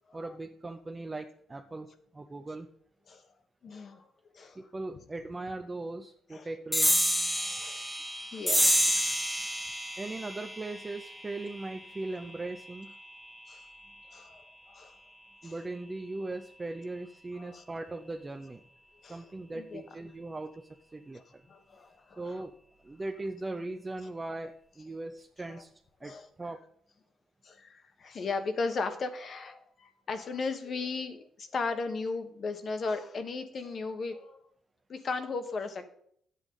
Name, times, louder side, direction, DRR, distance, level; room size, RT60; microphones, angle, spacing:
voice 1, 0.1-1.9 2.1-2.7 4.6-7.0 10.0-12.9 15.4-18.6 19.1-21.4 22.2-22.5 22.8-25.7 26.0-26.6, right 2 dB, 20° right, 4 dB, 0.6 m, -39 dB
voice 2, 3.6-4.1 4.3-4.6 6.3-6.5 7.4-7.8 8.3-9.1 13.5-13.6 14.1-15.0 15.4-15.5 17.3-17.6 19.0-19.8 21.1-21.2 21.5-22.5 25.5-25.6 26.0-26.3 27.4-34.4 34.9-35.9, left 4 dB, 50° left, 8 dB, 1.2 m, -36 dB
sound 1, 6.7-13.6, equal, 5° left, 1.4 m, -30 dB
10.5 x 8.3 x 3.8 m, 0.66 s
cardioid pair, 90°, 0 cm